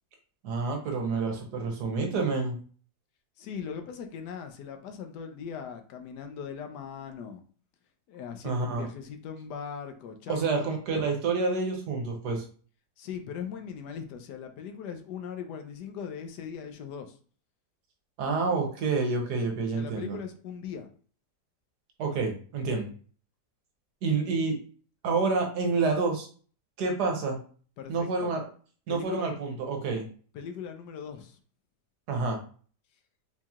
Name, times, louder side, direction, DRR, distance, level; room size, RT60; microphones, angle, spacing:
voice 1, 0.4-2.6 8.4-8.9 10.3-12.4 18.2-20.2 22.0-22.9 24.0-24.6 25.0-26.3 26.8-27.4 27.9-28.4 28.9-30.1 32.1-32.4, right 4 dB, 80° right, 2 dB, 1.4 m, -28 dB
voice 2, 3.4-7.4 8.1-11.0 13.0-17.2 19.7-20.9 27.8-28.3 28.9-29.3 30.3-31.4, left 7 dB, 80° left, 6 dB, 1.2 m, -39 dB
4.5 x 2.8 x 2.4 m, 0.42 s
omnidirectional pair, 1.8 m